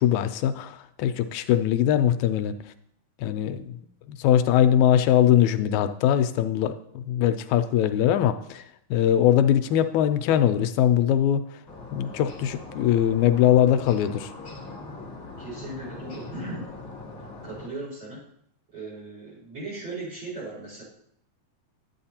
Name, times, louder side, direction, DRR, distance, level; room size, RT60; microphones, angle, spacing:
voice 1, 0.0-2.6 3.2-3.8 4.1-8.6 8.9-11.4 11.9-14.3, left 10 dB, 80° left, 10 dB, 1.8 m, -21 dB
sound 1, 11.7-17.7, left 3 dB, 35° left, 1.8 m, -41 dB
voice 2, 15.4-16.7 17.4-18.2 18.7-20.8, right 2 dB, 40° right, -6 dB, 5.2 m, -37 dB
10.5 x 8.6 x 2.8 m, 0.70 s
omnidirectional pair, 3.5 m